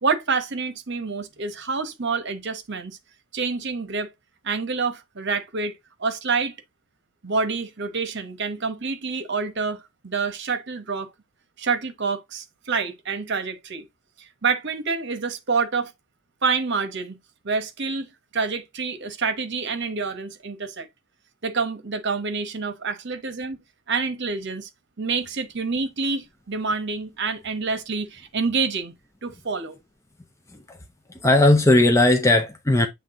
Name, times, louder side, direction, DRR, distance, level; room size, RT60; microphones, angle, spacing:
voice 1, 0.0-3.0 3.3-4.1 4.4-6.6 7.2-11.1 11.6-13.8 14.2-15.9 16.4-17.2 17.4-18.1 18.3-20.9 21.4-23.6 23.9-24.7 25.0-28.9 29.2-29.8, right 4 dB, 55° right, 1.1 m, -27 dB
voice 2, 31.1-32.9, left 2 dB, 15° left, 0.6 m, -17 dB
7.5 x 3.3 x 3.8 m
head